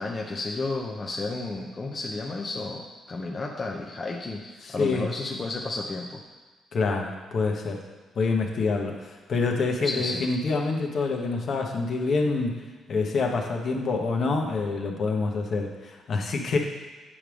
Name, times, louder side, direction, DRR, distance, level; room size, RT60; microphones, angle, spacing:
voice 1, 0.0-6.2 9.8-10.2, left 3 dB, 30° left, -1 dB, 0.8 m, -32 dB
voice 2, 4.6-5.1 6.7-7.8 8.1-12.6 12.9-16.6, left 4 dB, 55° left, 1 dB, 1.1 m, -26 dB
8.5 x 3.4 x 6.2 m, 1.4 s
cardioid pair, 90°, 0 cm